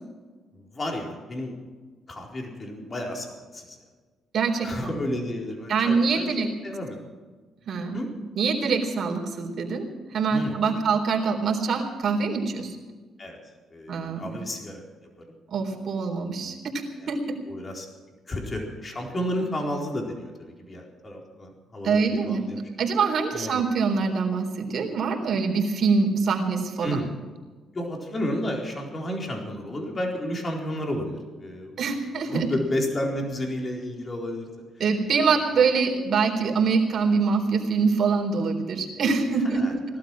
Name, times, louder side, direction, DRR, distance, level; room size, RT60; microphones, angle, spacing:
voice 1, 0.5-1.5 2.1-3.8 4.6-6.3 6.6-7.1 7.9-8.1 10.3-10.8 13.2-13.4 13.7-14.8 17.0-17.1 17.4-17.9 18.3-22.6 23.3-23.6 26.8-27.1 27.7-32.0 32.3-34.5 39.4-40.0, left 1 dB, 35° left, 1 dB, 4.2 m, -32 dB
voice 2, 4.3-5.0 5.7-6.5 7.7-8.0 8.4-12.8 13.9-14.4 15.5-16.6 17.1-17.2 21.8-22.4 22.8-27.0 31.8-32.5 34.8-40.0, right 5 dB, 60° right, 1 dB, 3.9 m, -24 dB
18.5 x 12.5 x 6.2 m, 1.4 s
cardioid pair, 90°, 0 cm